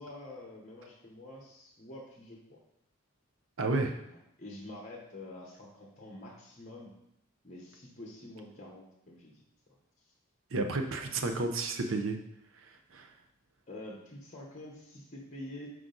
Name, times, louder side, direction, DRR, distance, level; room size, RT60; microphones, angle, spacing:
voice 1, 0.0-2.6 4.0-6.9 7.4-9.4 13.7-15.7, left 1 dB, 35° left, -1 dB, 1.0 m, -47 dB
voice 2, 3.6-4.0 10.5-12.2 12.6-13.1, right 3 dB, 70° right, 5 dB, 0.7 m, -32 dB
6.0 x 4.9 x 3.9 m, 0.77 s
head